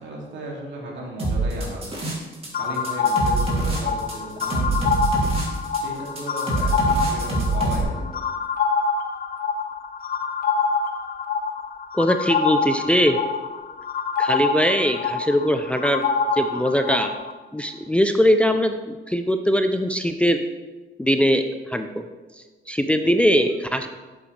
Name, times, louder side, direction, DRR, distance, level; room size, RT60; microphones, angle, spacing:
voice 1, 0.0-2.0 2.5-5.0 5.7-8.2, right 1 dB, 70° right, -2 dB, 2.6 m, -35 dB
sound 1, 1.2-2.5 2.7-7.8, right 3 dB, 30° right, 2.7 m, -24 dB
sound 2, 2.5-17.3, left 5 dB, 45° left, 0.7 m, -26 dB
voice 2, 11.9-13.2 14.2-16.1 16.3-17.1 17.5-20.4 21.0-22.0 22.7-23.9, equal, 5° left, 7 dB, 0.5 m, -21 dB
8.4 x 7.7 x 3.3 m, 1.2 s
cardioid pair, 90°, 20 cm